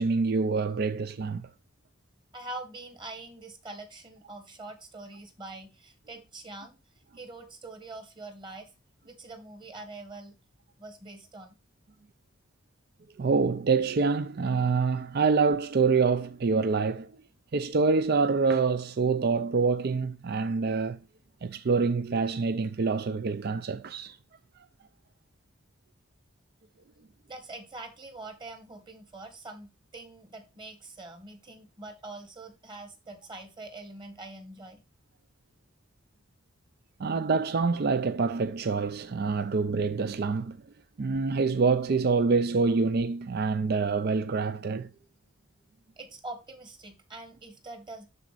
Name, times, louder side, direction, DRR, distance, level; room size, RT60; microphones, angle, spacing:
voice 1, 0.0-1.5 13.2-17.1 17.5-21.0 21.4-24.2 37.0-40.6 41.0-44.9, right 4 dB, 50° right, 0.4 m, -26 dB
voice 2, 2.3-6.8 7.1-8.7 9.0-10.3 10.8-11.6 27.3-34.8 46.0-48.1, right 2 dB, 20° right, 1.5 m, -44 dB
12.5 x 4.1 x 2.4 m
head